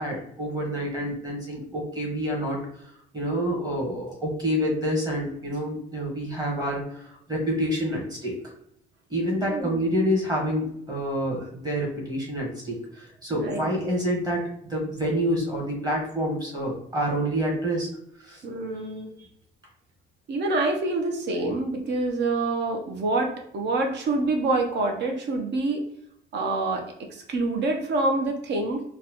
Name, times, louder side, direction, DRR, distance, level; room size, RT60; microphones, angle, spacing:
voice 1, 0.0-2.6 3.1-8.3 9.1-17.9 18.2-18.4, equal, 20° right, -2 dB, 1.2 m, -28 dB
voice 2, 9.4-9.8 13.3-13.7 18.4-19.1 20.3-25.8 26.3-26.8 27.1-28.8, right 2 dB, 65° right, 3 dB, 0.6 m, -26 dB
4.0 x 2.2 x 2.8 m, 0.74 s
cardioid pair, 155°, 19 cm